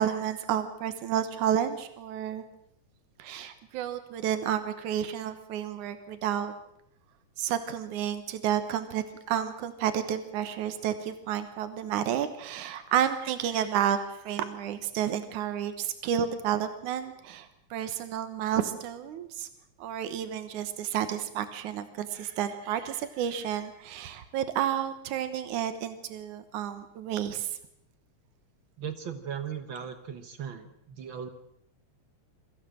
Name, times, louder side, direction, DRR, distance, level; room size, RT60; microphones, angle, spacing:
voice 1, 0.0-2.4 3.2-6.5 7.4-19.5 19.8-27.6, right 9 dB, 85° right, 10 dB, 2.6 m, -31 dB
voice 2, 28.8-31.3, right 8 dB, 55° right, 9 dB, 1.5 m, -38 dB
23.0 x 15.0 x 7.6 m, 0.77 s
omnidirectional pair, 3.4 m